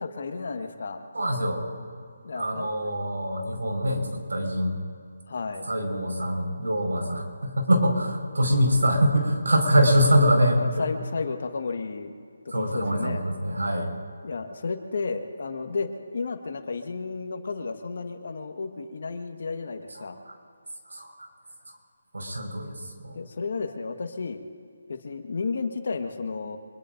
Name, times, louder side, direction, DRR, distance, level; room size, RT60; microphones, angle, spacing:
voice 1, 0.0-1.0 2.2-2.7 5.3-5.7 10.5-12.1 12.4-13.3 14.2-20.2 23.1-24.4 24.9-26.6, left 4 dB, 60° left, 6 dB, 1.5 m, -32 dB
voice 2, 1.1-1.6 2.3-4.7 5.6-10.9 12.5-13.9 20.0-20.3 20.9-21.1 21.7-21.8 22.1-23.2, equal, 80° right, 1 dB, 5.0 m, -24 dB
25.0 x 22.0 x 2.6 m, 2.2 s
figure-of-eight pair, 155°, 0 cm